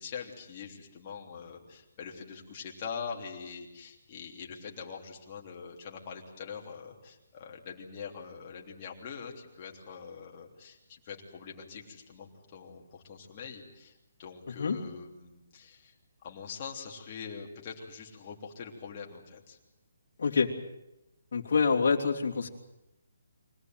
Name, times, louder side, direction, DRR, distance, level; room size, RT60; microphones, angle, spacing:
voice 1, 0.0-15.9 16.2-19.6, left 6 dB, 30° left, 0 dB, 3.3 m, -43 dB
voice 2, 20.2-20.5 21.3-22.5, left 5 dB, 55° left, -1 dB, 3.2 m, -26 dB
25.0 x 18.0 x 9.4 m, 0.93 s
hypercardioid pair, 170°, 0 cm